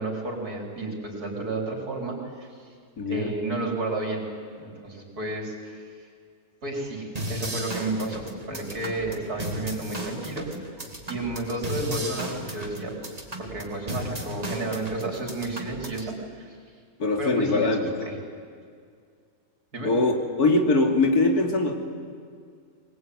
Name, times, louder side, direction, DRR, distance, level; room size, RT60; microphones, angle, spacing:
voice 1, 0.0-2.7 3.1-4.2 4.6-5.9 6.6-10.5 11.1-13.1 13.4-16.6 17.2-18.2 19.7-19.9, right 2 dB, 85° right, 0 dB, 4.7 m, -32 dB
voice 2, 3.0-3.3 17.0-18.1 19.8-20.1 20.4-21.8, left 2 dB, 85° left, 3 dB, 3.0 m, -22 dB
sound 1, 7.1-16.1, right 1 dB, 25° right, 2.5 m, -35 dB
21.5 x 20.5 x 9.5 m, 2.2 s
omnidirectional pair, 1.6 m